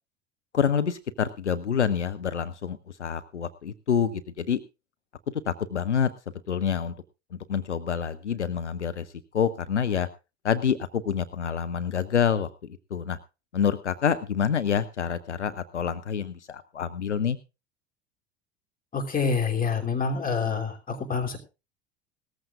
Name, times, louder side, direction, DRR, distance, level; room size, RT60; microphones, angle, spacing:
voice 1, 0.5-4.6 5.5-6.1 6.5-6.9 7.3-9.1 9.3-10.1 10.4-13.2 13.5-17.4, left 7 dB, 85° left, 12 dB, 0.7 m, -27 dB
voice 2, 18.9-21.4, left 5 dB, 25° left, 4 dB, 3.2 m, -27 dB
18.5 x 14.0 x 2.5 m, 0.28 s
figure-of-eight pair, 70°, 34 cm